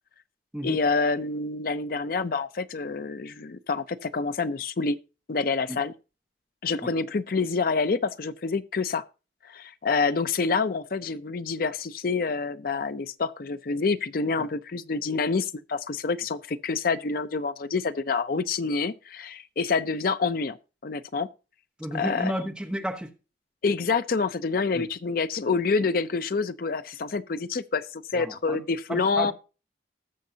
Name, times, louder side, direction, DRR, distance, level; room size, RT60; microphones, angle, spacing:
voice 1, 0.6-5.0 5.3-5.9 6.6-9.0 9.4-20.6 20.8-21.3 21.9-22.3 23.6-29.3, left 4 dB, 55° left, 0.5 m, -27 dB
voice 2, 21.8-23.1 24.7-24.9 28.2-28.6 28.9-29.3, equal, 5° right, 1.2 m, -32 dB
19.0 x 6.5 x 2.8 m
head